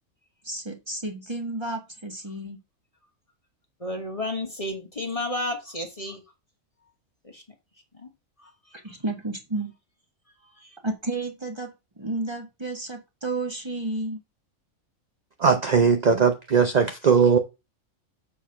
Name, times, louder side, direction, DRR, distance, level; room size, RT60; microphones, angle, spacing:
voice 1, 0.4-2.6 8.8-9.7 10.8-11.7 12.0-14.2, right 2 dB, 20° right, 1.4 m, -31 dB
voice 2, 3.8-6.2 7.3-7.4 8.0-8.1 10.6-10.7, left 1 dB, 25° left, 1.3 m, -31 dB
voice 3, 15.4-17.4, right 6 dB, 40° right, 0.7 m, -19 dB
7.1 x 4.5 x 5.7 m
omnidirectional pair, 1.4 m